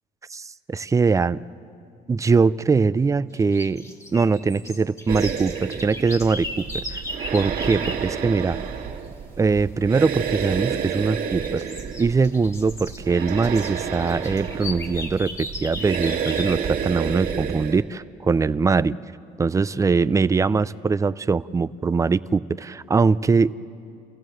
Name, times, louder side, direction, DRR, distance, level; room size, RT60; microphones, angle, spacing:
voice 1, 0.3-1.4 2.1-3.8 4.1-7.0 7.3-8.6 9.4-11.6 12.0-19.0 19.4-23.6, right 4 dB, 20° right, 16 dB, 0.4 m, -22 dB
sound 1, 3.3-8.1 10.3-10.7 11.1-16.7, left 2 dB, 20° left, 1.8 m, -37 dB
sound 2, 5.1-17.8, right 7 dB, 55° right, 2.0 m, -30 dB
29.0 x 15.5 x 7.8 m, 2.5 s
cardioid pair, 110°, 17 cm